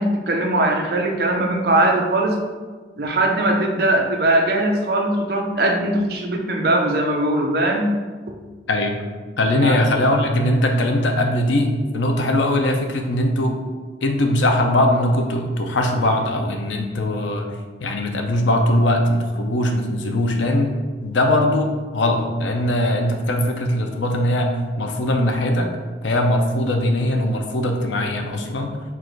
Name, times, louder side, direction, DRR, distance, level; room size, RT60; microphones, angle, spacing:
voice 1, 0.0-2.4 3.0-7.9 9.6-9.8, right 1 dB, 55° right, 2 dB, 0.5 m, -20 dB
voice 2, 9.4-13.6 14.0-17.5 17.8-20.7 21.0-25.8 26.0-28.7, left 1 dB, 90° left, 3 dB, 0.6 m, -20 dB
4.6 x 2.5 x 4.4 m, 1.4 s
head